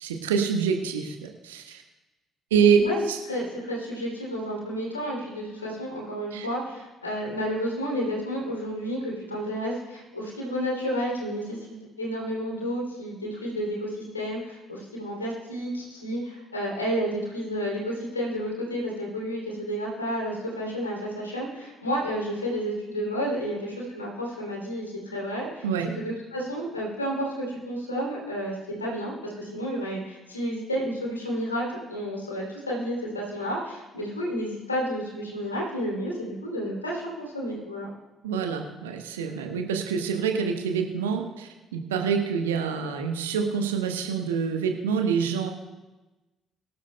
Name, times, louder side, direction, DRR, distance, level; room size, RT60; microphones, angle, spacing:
voice 1, 0.0-1.8 2.5-2.8 3.1-3.2 6.3-6.5 25.6-25.9 38.2-45.5, right 6 dB, 75° right, 4 dB, 1.1 m, -26 dB
voice 2, 3.3-25.7 25.9-37.9, equal, 85° left, -2 dB, 2.7 m, -31 dB
23.0 x 12.0 x 2.2 m, 1.1 s
figure-of-eight pair, 45°, 0 cm